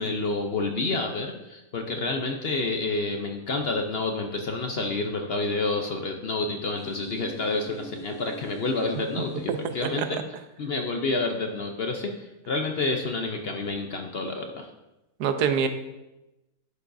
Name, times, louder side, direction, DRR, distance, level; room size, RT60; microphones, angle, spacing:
voice 1, 0.0-10.2 10.6-14.7, left 3 dB, 55° left, 4 dB, 0.6 m, -29 dB
sound 1, 6.8-10.1, left 3 dB, 75° left, 1.8 m, -44 dB
voice 2, 9.5-10.2 15.2-15.7, right 7 dB, 70° right, 8 dB, 1.2 m, -26 dB
11.5 x 6.9 x 2.6 m, 0.98 s
omnidirectional pair, 1.8 m